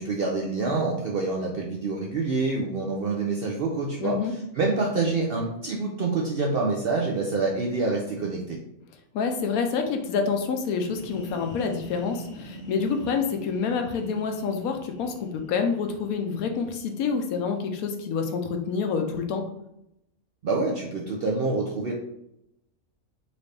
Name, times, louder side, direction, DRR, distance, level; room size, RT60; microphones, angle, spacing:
voice 1, 0.0-8.6 20.4-21.9, right 3 dB, 65° right, -2 dB, 0.5 m, -27 dB
voice 2, 4.0-4.3 9.1-19.5, left 5 dB, 75° left, 5 dB, 1.0 m, -27 dB
sound 1, 10.6-18.2, equal, 50° left, 0.6 m, -45 dB
4.1 x 2.6 x 3.2 m, 0.82 s
omnidirectional pair, 1.5 m